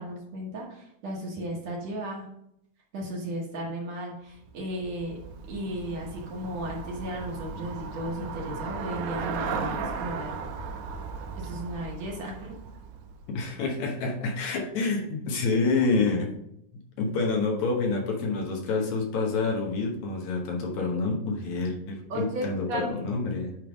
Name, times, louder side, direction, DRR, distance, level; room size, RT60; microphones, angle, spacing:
voice 1, 0.0-2.3 2.9-5.2 5.5-10.3 11.4-12.6 22.1-22.9, right 1 dB, 60° right, -1 dB, 2.2 m, -35 dB
Traffic noise roadway noise / Bicycle, 4.4-13.5, right 5 dB, 85° right, 2.3 m, -36 dB
voice 2, 13.3-16.3 17.0-23.5, left 3 dB, 70° left, 0 dB, 2.3 m, -28 dB
9.2 x 3.3 x 5.1 m, 0.77 s
omnidirectional pair, 3.7 m